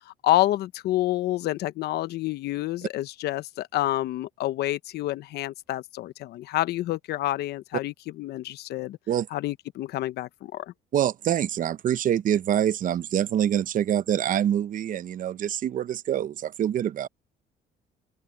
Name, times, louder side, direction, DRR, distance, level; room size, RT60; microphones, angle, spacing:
voice 1, 0.1-9.0 9.3-10.7, left 15 dB, 75° left, 0.9 m, -28 dB
voice 2, 10.9-17.1, right 10 dB, 50° right, 0.8 m, -25 dB
open air
cardioid pair, 110°, 17 cm